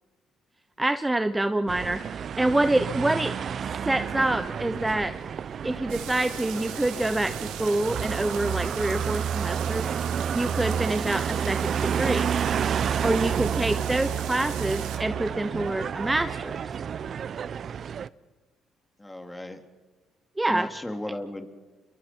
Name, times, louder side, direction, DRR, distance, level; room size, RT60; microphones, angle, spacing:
voice 1, 0.8-2.0 2.4-3.4 3.8-5.1 5.6-9.9 10.3-12.3 13.0-16.6 20.4-20.7, right 1 dB, 15° right, 10 dB, 0.9 m, -26 dB
sound 1, 1.7-18.1, right 7 dB, 55° right, 0.7 m, -30 dB
sound 2, 5.9-15.0, right 10 dB, 85° right, 2.8 m, -40 dB
voice 2, 19.0-19.6 20.5-21.5, left 1 dB, 15° left, 5 dB, 3.1 m, -35 dB
29.0 x 23.0 x 4.6 m, 1.3 s
supercardioid pair, 65°, 0 cm